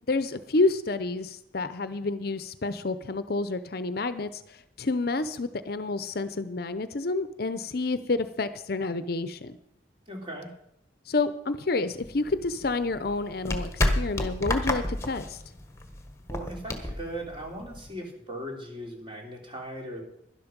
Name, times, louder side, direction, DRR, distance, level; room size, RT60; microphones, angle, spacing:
voice 1, 0.1-9.6 11.1-15.4, left 3 dB, 55° left, 13 dB, 0.6 m, -29 dB
voice 2, 10.1-10.5 16.3-20.0, right 1 dB, 30° right, 0 dB, 3.1 m, -38 dB
sound 1, 12.0-17.9, left 1 dB, 15° left, 1.4 m, -31 dB
12.0 x 11.5 x 5.2 m, 0.79 s
head